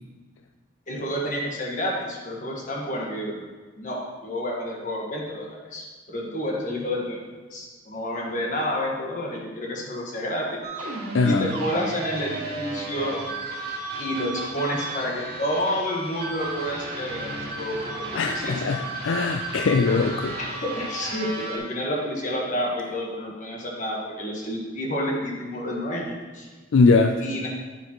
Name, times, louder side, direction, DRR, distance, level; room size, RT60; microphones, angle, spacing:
voice 1, 0.9-3.4 3.8-7.2 7.5-10.6 11.2-13.2 14.0-18.6 20.4-26.5 27.2-27.5, equal, 40° left, -2 dB, 1.5 m, -29 dB
sound 1, 10.6-21.6, right 2 dB, 50° right, 1.8 m, -34 dB
voice 2, 11.1-11.5 18.2-20.3 26.7-27.2, left 4 dB, 80° left, 5 dB, 0.4 m, -21 dB
8.9 x 7.9 x 3.0 m, 1.4 s
head